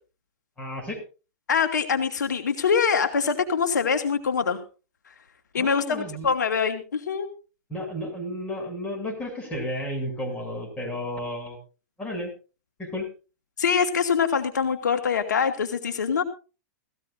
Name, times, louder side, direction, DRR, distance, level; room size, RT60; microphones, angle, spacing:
voice 1, 0.6-1.0 5.6-6.3 7.7-11.6 12.0-12.3 12.8-13.1, equal, 15° left, 1 dB, 7.3 m, -32 dB
voice 2, 1.5-4.6 5.5-7.3 13.6-16.2, left 6 dB, 90° left, 6 dB, 2.2 m, -24 dB
19.0 x 15.5 x 2.6 m, 0.33 s
hypercardioid pair, 130°, 9 cm